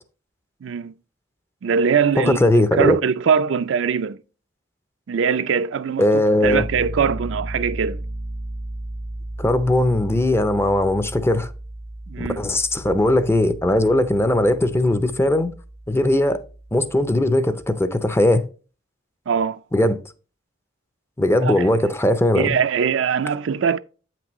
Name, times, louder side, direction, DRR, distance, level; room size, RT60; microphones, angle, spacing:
voice 1, 0.6-0.9 1.6-4.2 5.1-6.0 6.4-8.0 12.1-12.4 19.3-19.6 21.4-21.7 22.3-23.8, right 6 dB, 70° right, 0.4 m, -22 dB
voice 2, 2.2-3.0 6.0-6.6 9.4-11.5 12.2-15.5 15.9-16.4 16.7-18.4 19.7-20.0 21.2-22.6, left 1 dB, 15° left, 0.5 m, -19 dB
Piano, 6.4-17.3, right 1 dB, 85° right, 1.0 m, -35 dB
8.5 x 6.0 x 3.0 m
head